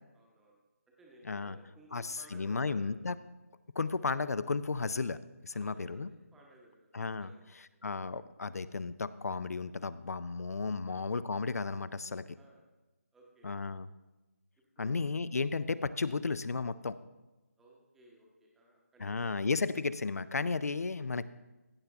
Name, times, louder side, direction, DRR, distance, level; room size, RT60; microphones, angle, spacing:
voice 1, 0.1-0.6 1.0-2.9 5.5-6.9 7.2-7.5 7.7-7.8 10.9-11.0 12.3-12.7 13.1-13.6 14.8-15.0 17.6-19.4, right 2 dB, 5° right, -2 dB, 0.9 m, -59 dB
voice 2, 1.9-3.2 3.8-6.1 6.9-7.3 7.8-12.4 13.4-13.9 14.8-17.0 19.0-21.2, left 4 dB, 70° left, 16 dB, 0.5 m, -34 dB
15.5 x 6.8 x 3.5 m, 1.1 s
figure-of-eight pair, 165°, 9 cm